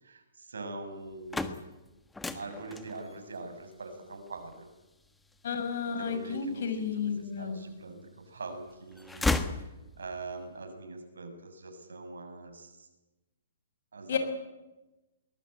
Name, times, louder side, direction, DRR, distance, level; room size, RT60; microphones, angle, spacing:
voice 1, 0.0-1.5 2.3-4.7 5.8-7.1 7.4-12.9 13.9-14.2, right 3 dB, 80° right, 6 dB, 6.8 m, -43 dB
sound 1, 1.0-7.0 7.5-8.4 8.7-10.3, left 2 dB, 5° left, 1.5 m, -36 dB
voice 2, 5.4-7.6 14.1-14.2, left 6 dB, 60° left, 9 dB, 5.8 m, -32 dB
22.5 x 20.5 x 9.1 m, 1.1 s
hypercardioid pair, 130°, 0 cm